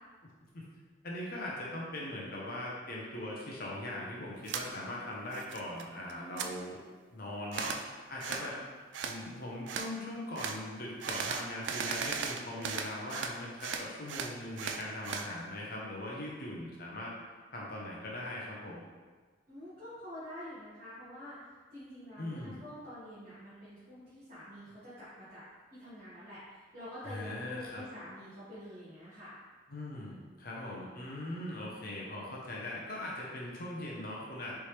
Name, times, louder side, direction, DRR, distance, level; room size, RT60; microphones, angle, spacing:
voice 1, 1.0-6.8 7.1-8.6 9.0-17.1 17.5-18.8 22.2-22.6 27.0-27.8 29.7-34.5, left 1 dB, 50° left, -4 dB, 0.7 m, -40 dB
sound 1, 4.5-4.7 5.1-5.8 6.1-6.5 7.5-7.8 8.2-8.5 8.9-9.2 9.7-9.9 10.4-10.6 11.0-13.3 13.6-15.3, right 6 dB, 65° right, 0.3 m, -37 dB
voice 2, 6.1-6.7 8.2-8.5 12.5-12.8 19.5-21.5 21.7-25.4 25.8-29.3, left 1 dB, 40° right, -14 dB, 1.5 m, -47 dB
4.3 x 3.4 x 3.2 m, 1.4 s
head